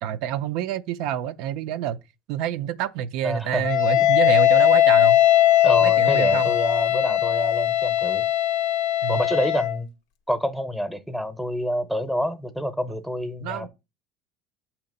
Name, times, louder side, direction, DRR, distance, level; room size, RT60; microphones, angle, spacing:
voice 1, 0.0-2.0 2.3-5.2 5.8-6.5 9.0-9.2 12.9-13.0 13.4-13.7, right 10 dB, 70° right, 0.4 m, -27 dB
voice 2, 3.2-3.7 4.0-4.1 5.6-8.3 9.1-9.9 10.3-13.7, equal, ahead, 0.7 m, -27 dB
Wind instrument woodwind instrument, 3.6-9.8, left 13 dB, 80° left, 0.6 m, -19 dB
7.0 x 2.9 x 5.3 m
cardioid pair, 130°, 0 cm